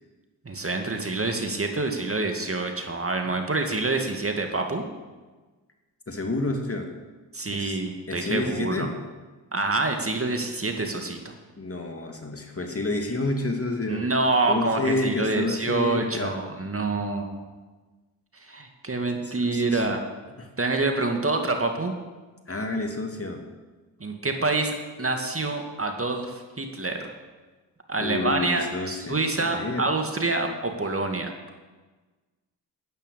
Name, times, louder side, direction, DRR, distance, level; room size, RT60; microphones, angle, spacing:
voice 1, 0.5-4.8 7.3-8.9 9.5-11.2 13.9-17.4 18.4-20.0 20.6-21.9 24.0-27.1 27.9-31.3, right 3 dB, 30° right, 4 dB, 2.1 m, -27 dB
voice 2, 6.1-6.9 7.5-7.8 8.1-8.9 11.6-14.1 14.5-16.3 19.2-19.9 20.4-20.5 22.5-23.4 28.0-29.9, left 2 dB, 30° left, 3 dB, 2.4 m, -29 dB
11.5 x 9.9 x 6.9 m, 1.3 s
supercardioid pair, 40°, 45 cm